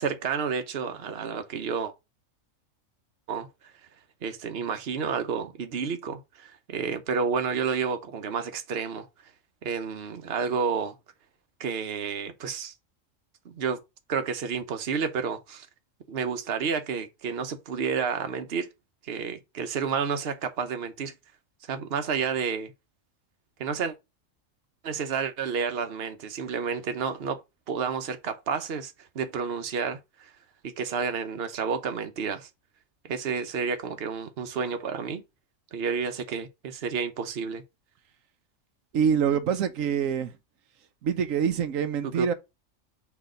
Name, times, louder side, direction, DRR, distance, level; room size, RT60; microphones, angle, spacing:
voice 1, 0.0-1.9 3.3-3.5 4.2-9.1 9.6-10.9 11.6-12.7 13.4-13.8 14.1-15.7 16.1-18.7 19.0-21.1 21.7-22.7 23.6-23.9 24.8-27.4 27.7-30.3 30.6-32.5 33.0-35.2 35.7-37.6 42.0-42.3, right 6 dB, 55° right, 1.1 m, -30 dB
voice 2, 38.9-40.3 41.0-42.3, right 7 dB, 90° right, 1.2 m, -25 dB
6.3 x 3.4 x 5.1 m
omnidirectional pair, 1.3 m